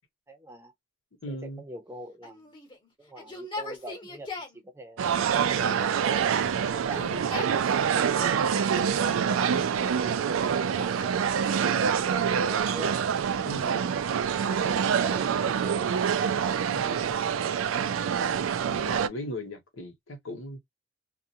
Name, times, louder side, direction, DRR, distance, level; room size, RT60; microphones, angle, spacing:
voice 1, 0.3-0.7 1.3-2.5 3.0-6.3 15.0-16.1, right 1 dB, 15° right, 0.6 m, -44 dB
voice 2, 1.2-1.6 7.0-7.2 13.5-14.0 14.4-15.3 16.7-17.1 18.7-20.6, left 1 dB, 85° left, 1.0 m, -39 dB
Yell, 2.2-4.6 5.5-6.2 6.6-8.5 9.2-9.9 10.6-12.4 13.8-14.6 15.5-17.2, left 3 dB, 25° left, 0.9 m, -44 dB
sound 1, 5.0-19.1, right 7 dB, 80° right, 0.4 m, -26 dB
2.4 x 2.2 x 2.7 m
head